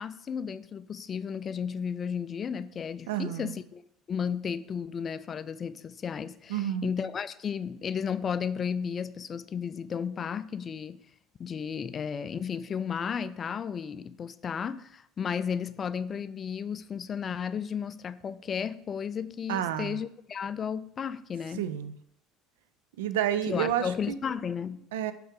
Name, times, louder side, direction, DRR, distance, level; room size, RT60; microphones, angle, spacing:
voice 1, 0.0-3.8 4.1-11.0 11.4-21.7 23.5-24.9, left 7 dB, 35° left, 0.3 m, -33 dB
voice 2, 3.1-3.5 6.5-6.9 19.5-20.0 21.6-22.0 23.0-24.2 24.9-25.1, right 10 dB, 70° right, 0.3 m, -30 dB
5.4 x 3.8 x 4.8 m
figure-of-eight pair, 65°, 0 cm